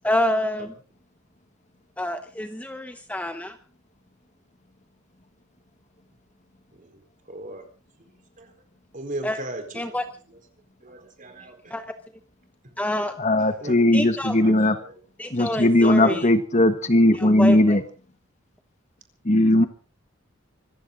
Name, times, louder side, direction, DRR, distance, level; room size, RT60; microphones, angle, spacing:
voice 1, 0.0-0.7 2.0-3.6 9.2-9.4 9.8-10.0 11.7-11.8 12.8-13.1 13.9-14.3 15.2-16.1 17.1-17.6, left 1 dB, 5° left, 8 dB, 0.9 m, -27 dB
voice 2, 6.7-7.7 8.0-8.5 8.9-10.4 10.8-11.7 13.3-15.0 15.8-16.2, right 1 dB, 40° right, 6 dB, 4.2 m, -38 dB
voice 3, 13.2-14.8 15.3-17.8 19.2-19.7, left 1 dB, 35° left, 10 dB, 1.4 m, -18 dB
25.0 x 15.0 x 3.9 m, 0.38 s
head